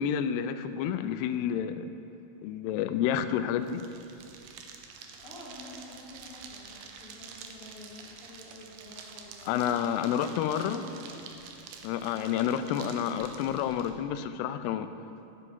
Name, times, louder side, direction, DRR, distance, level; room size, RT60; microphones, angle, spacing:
voice 1, 0.0-1.9 2.4-3.8 9.5-10.8 11.8-14.9, left 9 dB, 85° left, 10 dB, 2.6 m, -29 dB
sound 1, 3.6-13.9, right 6 dB, 75° right, 2.4 m, -48 dB
voice 2, 4.8-9.5 10.0-11.2 12.4-12.7, left 1 dB, 40° left, -6 dB, 2.3 m, -48 dB
12.0 x 8.3 x 5.7 m, 2.8 s
omnidirectional pair, 4.8 m